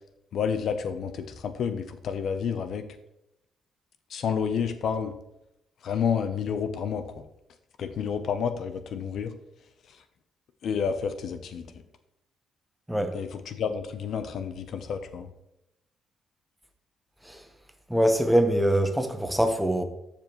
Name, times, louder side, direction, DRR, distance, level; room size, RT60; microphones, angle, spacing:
voice 1, 0.3-2.9 4.1-5.1 5.8-7.1 7.8-9.3 9.9-10.0 10.6-11.7 13.1-15.3, left 7 dB, 65° left, 9 dB, 0.7 m, -30 dB
voice 2, 17.9-19.8, right 1 dB, 5° right, 7 dB, 1.1 m, -23 dB
14.0 x 5.1 x 3.1 m, 0.86 s
cardioid pair, 90°, 0 cm